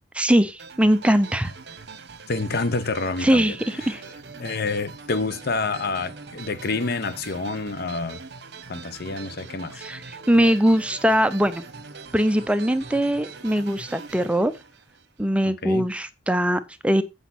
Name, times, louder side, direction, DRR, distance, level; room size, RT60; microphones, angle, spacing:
voice 1, 0.2-1.5 3.2-4.0 9.7-11.6 12.1-14.5 15.2-17.0, equal, 5° right, 0.5 m, -21 dB
sound 1, 0.6-15.4, right 4 dB, 60° right, 1.0 m, -42 dB
voice 2, 2.3-3.6 3.8-3.9 4.4-8.2 8.7-9.8 15.4-15.9, left 3 dB, 55° left, 0.8 m, -28 dB
8.1 x 5.1 x 5.8 m
head